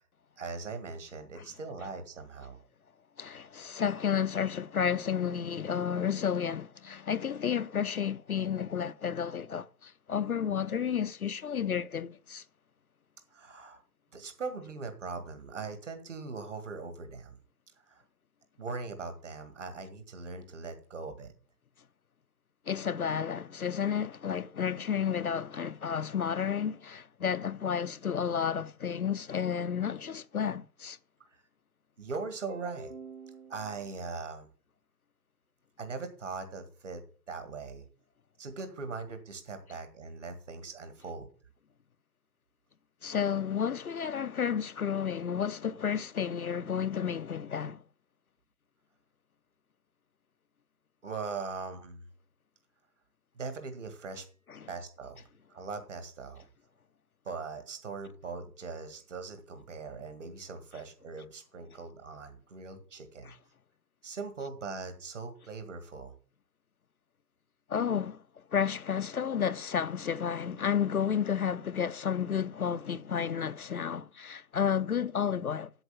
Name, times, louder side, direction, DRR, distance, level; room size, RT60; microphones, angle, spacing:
voice 1, 0.4-2.6 13.3-13.8 14.1-17.4 17.9-18.0 18.6-21.3 31.3-31.4 32.0-34.5 35.8-37.0 37.3-37.9 38.4-41.3 51.0-52.0 53.4-54.3 54.7-55.2 55.5-56.5 57.3-63.3 64.0-66.1, right 4 dB, 45° right, 2.0 m, -40 dB
voice 2, 3.2-12.4 22.7-31.0 43.0-47.8 54.5-54.7 63.2-63.4 67.7-68.2 68.5-75.7, left 8 dB, 60° left, 0.5 m, -31 dB
8.0 x 7.4 x 7.4 m
figure-of-eight pair, 150°, 50 cm